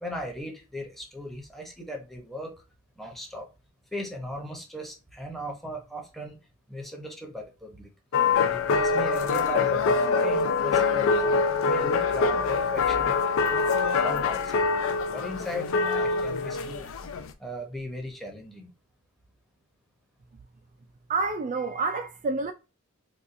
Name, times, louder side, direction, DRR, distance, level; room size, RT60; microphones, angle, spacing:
voice 1, 0.0-2.5 3.0-3.5 3.9-6.4 6.7-7.9 8.4-11.1 11.7-13.2 14.0-14.7 15.1-16.9 17.4-18.7, equal, ahead, 0.8 m, -37 dB
sound 1, 8.1-17.3, left 4 dB, 65° left, 0.4 m, -24 dB
voice 2, 21.1-22.5, right 3 dB, 35° right, 0.3 m, -28 dB
4.1 x 2.3 x 2.6 m
head